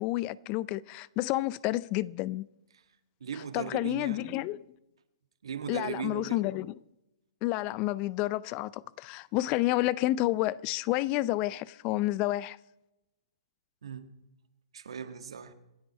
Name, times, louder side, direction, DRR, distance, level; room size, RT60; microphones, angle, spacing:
voice 1, 0.0-2.5 3.5-4.6 5.7-6.7 7.4-12.6, left 17 dB, 35° left, 0.4 m, -30 dB
voice 2, 3.2-4.4 5.4-6.5 13.8-14.1 14.7-15.5, right 7 dB, 70° right, 1.6 m, -38 dB
27.0 x 9.4 x 4.4 m
hypercardioid pair, 120°, 3 cm